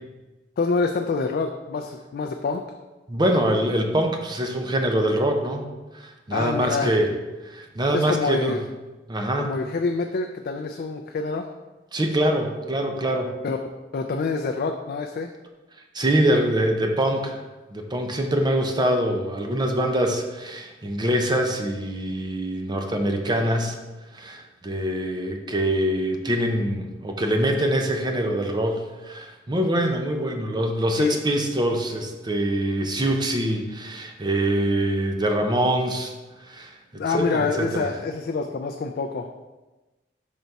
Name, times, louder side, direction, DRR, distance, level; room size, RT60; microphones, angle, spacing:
voice 1, 0.6-2.6 6.3-6.9 7.9-8.6 9.4-11.5 13.4-13.6 13.9-15.3 31.0-31.2 37.0-39.5, left 4 dB, 55° left, 4 dB, 0.3 m, -26 dB
voice 2, 3.1-5.7 5.9-7.1 7.4-8.6 9.1-9.5 11.9-13.3 15.9-17.4 17.7-23.8 24.1-36.1 36.5-36.7 37.1-37.9, right 1 dB, 25° right, 4 dB, 0.7 m, -24 dB
5.4 x 4.0 x 4.6 m, 1.1 s
head